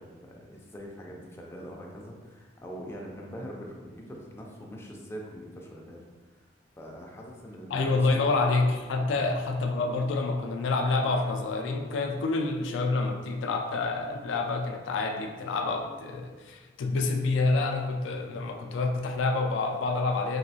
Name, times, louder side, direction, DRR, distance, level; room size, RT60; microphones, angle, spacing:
voice 1, 0.0-6.0 6.8-8.4 9.0-9.2, equal, 15° left, -1 dB, 0.4 m, -43 dB
voice 2, 7.7-20.4, left 3 dB, 85° left, 4 dB, 0.3 m, -28 dB
3.1 x 2.7 x 2.7 m, 1.3 s
head